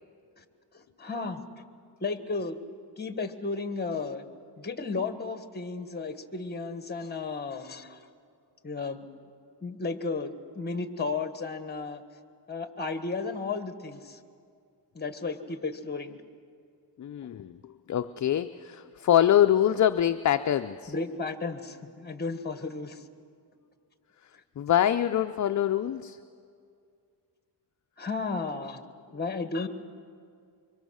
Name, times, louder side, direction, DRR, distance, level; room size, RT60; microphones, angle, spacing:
voice 1, 0.7-1.4 2.0-2.6 3.0-4.2 4.6-8.0 8.6-9.1 9.6-12.0 12.5-14.2 14.9-16.2 17.2-17.3 20.9-23.0 28.0-28.8 29.1-29.7, left 4 dB, 25° left, 9 dB, 1.5 m, -33 dB
voice 2, 17.0-17.6 17.9-20.9 24.6-26.2, left 11 dB, 45° left, 8 dB, 0.6 m, -24 dB
26.0 x 24.0 x 6.4 m, 2.3 s
cardioid pair, 100°, 42 cm